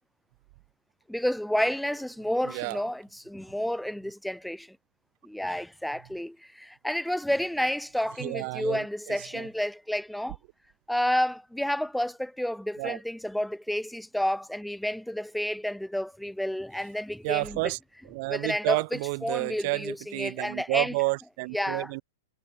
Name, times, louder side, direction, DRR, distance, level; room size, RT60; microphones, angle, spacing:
voice 1, 1.1-4.8 5.2-10.4 10.9-17.6 18.3-20.9 21.5-21.9, left 1 dB, ahead, 2.8 m, -30 dB
voice 2, 2.4-2.8 8.2-9.5 12.8-13.0 17.2-17.8 18.0-22.0, right 28 dB, 45° right, 2.5 m, -30 dB
figure-of-eight pair, 105°, 0 cm